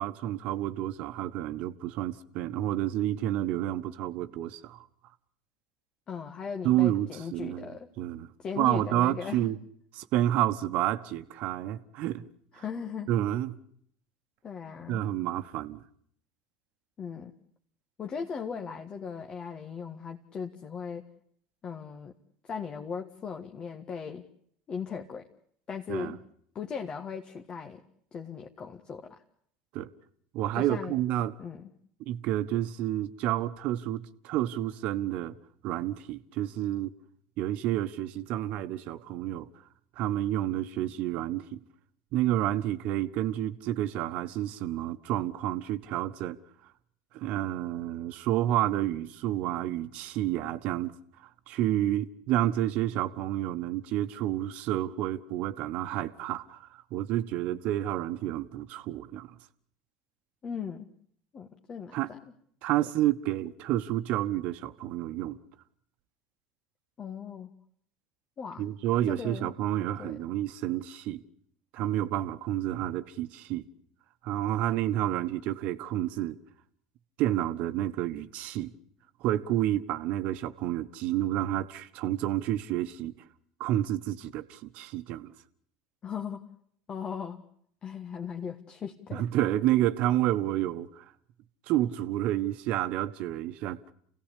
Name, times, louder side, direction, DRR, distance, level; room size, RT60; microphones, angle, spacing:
voice 1, 0.0-4.8 6.6-7.7 8.0-8.3 8.6-9.6 10.0-12.3 13.1-13.6 14.9-15.8 25.9-26.1 29.7-29.9 30.3-31.3 32.1-35.3 35.6-36.9 37.4-39.5 40.0-41.6 42.1-46.4 47.1-50.9 51.5-59.3 61.9-62.1 62.6-65.4 68.6-71.2 71.7-73.7 74.2-76.4 77.2-78.7 79.2-83.1 83.6-85.3 89.1-91.0 91.7-93.8, right 13 dB, 55° right, 1.3 m, -29 dB
voice 2, 6.1-7.9 8.4-9.5 12.5-13.1 14.4-15.0 17.0-17.3 18.0-21.1 21.6-22.1 22.4-24.3 24.7-25.3 25.7-26.2 26.5-27.8 28.1-29.2 30.5-30.9 31.4-31.7 60.4-60.9 61.3-62.3 67.0-67.5 68.4-68.7 69.1-69.5 70.0-70.2 86.0-86.5 86.9-87.4 87.8-89.3, left 6 dB, 35° left, 1.6 m, -38 dB
28.5 x 17.0 x 8.4 m
hypercardioid pair, 80°, 3 cm